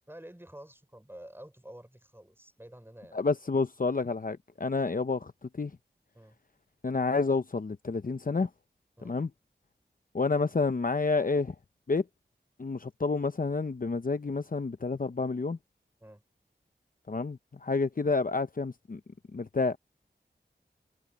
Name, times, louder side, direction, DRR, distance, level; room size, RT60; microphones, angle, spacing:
voice 1, 0.1-3.2 6.1-6.4 9.0-9.2 16.0-16.2, right 1 dB, 10° right, 6.4 m, -49 dB
voice 2, 3.1-5.7 6.8-8.5 9.0-9.3 10.1-11.5 11.9-12.0 12.6-15.6 17.1-19.0 19.3-19.8, left 4 dB, 50° left, 0.8 m, -29 dB
wide cardioid pair, 55°, 18 cm